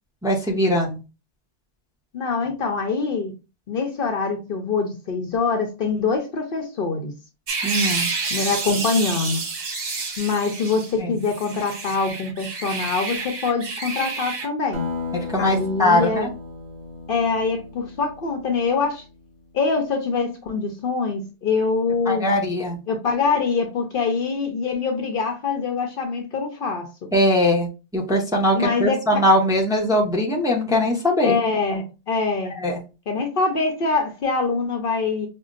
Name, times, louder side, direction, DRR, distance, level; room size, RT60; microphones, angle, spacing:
voice 1, 0.2-1.0 7.6-8.1 11.0-11.2 15.1-16.3 22.1-22.8 27.1-31.4 32.5-32.8, left 1 dB, 5° right, -1 dB, 0.7 m, -21 dB
voice 2, 2.1-3.3 3.7-7.1 8.3-9.4 10.2-14.9 15.4-16.3 17.1-19.0 19.5-22.3 22.9-26.9 28.5-29.2 31.2-32.5 33.1-35.3, left 4 dB, 55° left, 4 dB, 0.7 m, -24 dB
sound 1, 7.5-10.9 11.2-14.5, right 4 dB, 75° right, 1.1 m, -29 dB
Acoustic guitar, 14.7-19.6, left 3 dB, 40° right, 0.8 m, -35 dB
5.3 x 2.2 x 2.4 m, 0.30 s
omnidirectional pair, 1.2 m